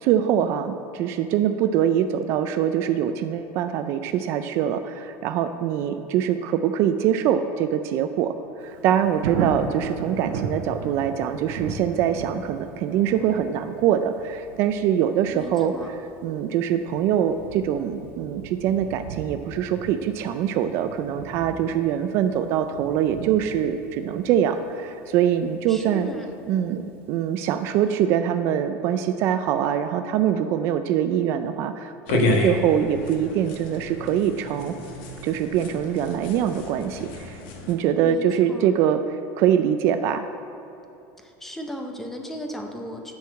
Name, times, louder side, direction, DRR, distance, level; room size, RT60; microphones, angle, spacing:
voice 1, 0.0-8.3 8.6-26.1 26.5-34.7 35.2-37.4 37.7-40.2, right 9 dB, 40° right, 9 dB, 0.3 m, -23 dB
Thunder, 8.6-27.4 27.8-27.9, right 5 dB, 90° right, 0.8 m, -37 dB
voice 2, 15.3-15.9 25.7-26.3 38.0-38.7 41.2-43.1, equal, 5° left, 3 dB, 0.6 m, -36 dB
sound 1, 32.1-37.7, left 2 dB, 65° left, 1.3 m, -30 dB
10.5 x 4.6 x 7.6 m, 2.9 s
cardioid pair, 175°, 6 cm